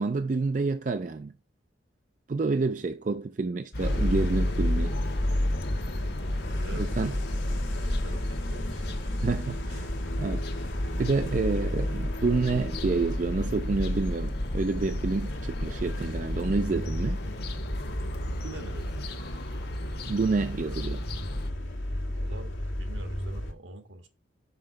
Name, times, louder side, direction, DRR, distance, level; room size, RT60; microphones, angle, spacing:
voice 1, 0.0-1.3 2.3-4.9 6.7-7.1 9.2-9.9 10.2-10.4 11.0-17.2 20.1-21.0, right 3 dB, 40° right, 0.4 m, -28 dB
sound 1, 3.7-21.5, left 1 dB, 55° left, 1.1 m, -39 dB
sound 2, 3.8-23.5, left 1 dB, 80° left, 1.5 m, -31 dB
voice 2, 6.5-8.9 18.4-19.0 22.1-24.1, right 2 dB, 75° right, 1.5 m, -46 dB
5.7 x 5.6 x 6.3 m
head